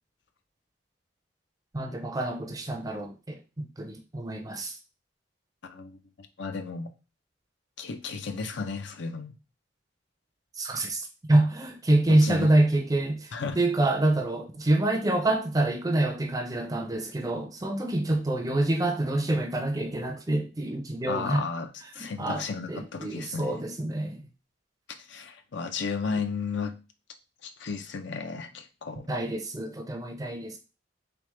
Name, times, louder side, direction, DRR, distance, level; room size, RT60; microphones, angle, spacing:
voice 1, 1.7-4.8 10.6-21.4 22.2-22.4 22.7-24.2 29.1-30.6, right 2 dB, 20° right, 0.5 m, -26 dB
voice 2, 5.6-6.0 6.4-6.9 7.8-9.3 12.2-12.5 13.3-13.6 21.1-21.7 21.9-23.6 25.0-26.8 27.4-29.2, left 5 dB, 65° left, 0.5 m, -34 dB
3.8 x 3.5 x 3.1 m
head